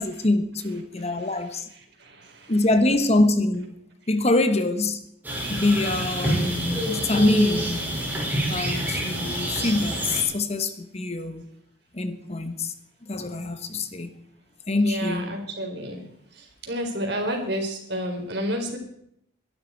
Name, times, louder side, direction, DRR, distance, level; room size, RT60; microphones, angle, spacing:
voice 1, 0.0-1.7 2.5-3.8 4.1-5.0 5.5-7.9 8.5-11.4 11.9-12.7 13.1-14.1 14.7-15.4, left 2 dB, 35° left, 1.2 m, -24 dB
voice 2, 2.0-2.5 14.7-16.0 16.3-18.8, equal, 60° right, 4.4 m, -30 dB
sound 1, 5.2-10.2, right 1 dB, 10° right, 6.1 m, -27 dB
22.5 x 12.0 x 4.7 m
head